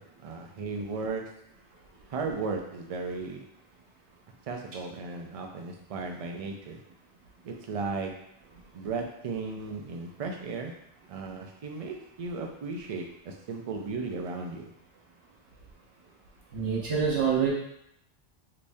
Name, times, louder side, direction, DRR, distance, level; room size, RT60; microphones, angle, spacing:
voice 1, 0.0-1.4 2.1-3.5 4.5-6.8 7.4-8.3 8.7-10.8 11.1-14.7, right 4 dB, 50° right, 2 dB, 0.4 m, -35 dB
voice 2, 16.5-17.5, right 6 dB, 90° right, -4 dB, 1.2 m, -26 dB
3.4 x 2.9 x 2.6 m, 0.77 s
omnidirectional pair, 1.2 m